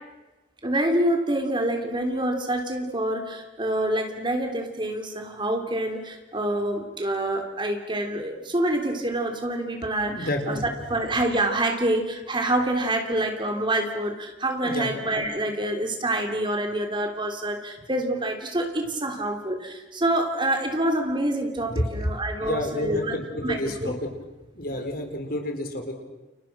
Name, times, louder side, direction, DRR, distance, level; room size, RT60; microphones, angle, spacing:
voice 1, 0.6-10.6 10.9-23.2 23.4-23.9, right 1 dB, 25° right, 4 dB, 3.4 m, -26 dB
voice 2, 10.1-10.7 14.6-14.9 21.7-21.8 22.4-23.9 24.5-25.9, left 1 dB, 55° left, 4 dB, 4.6 m, -30 dB
30.0 x 30.0 x 6.2 m, 1.1 s
head